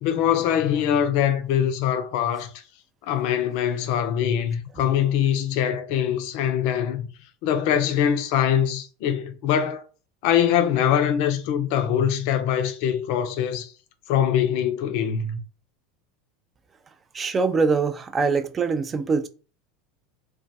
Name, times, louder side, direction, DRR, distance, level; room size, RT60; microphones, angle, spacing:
voice 1, 0.0-2.5 3.1-7.1 7.4-9.8 10.2-13.7 14.1-15.4, left 9 dB, 60° left, 0.4 m, -23 dB
voice 2, 17.1-19.3, right 4 dB, 25° right, 0.4 m, -23 dB
2.2 x 2.1 x 2.6 m
hypercardioid pair, 85°, 0 cm